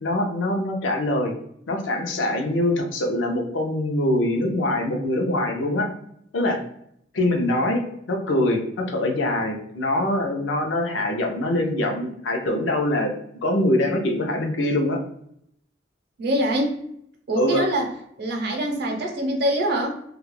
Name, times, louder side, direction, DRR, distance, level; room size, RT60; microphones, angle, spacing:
voice 1, 0.0-1.3 1.7-5.9 6.3-6.6 7.1-13.1 13.4-15.0 17.3-17.6, left 1 dB, 75° left, 3 dB, 0.5 m, -23 dB
voice 2, 16.2-16.8 17.3-17.9 18.2-19.9, right 1 dB, 60° right, 2 dB, 0.6 m, -24 dB
2.3 x 2.1 x 3.1 m, 0.71 s
head